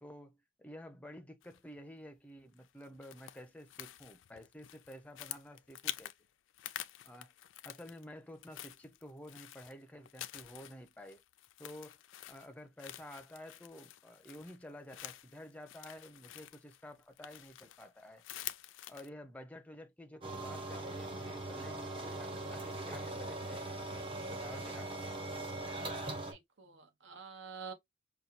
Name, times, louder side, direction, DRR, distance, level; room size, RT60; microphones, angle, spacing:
voice 1, 0.0-6.1 7.0-7.3 7.6-11.2 11.6-12.0 12.3-18.2 18.9-24.9, equal, 5° left, 0.5 m, -51 dB
sound 1, 1.4-1.8 2.5-6.2 6.5-8.1 8.3-19.1, left 13 dB, 80° left, 0.4 m, -48 dB
sound 2, 20.2-26.3, right 2 dB, 25° right, 0.8 m, -41 dB
voice 2, 26.3-27.7, right 6 dB, 70° right, 1.0 m, -48 dB
5.3 x 2.3 x 2.8 m
head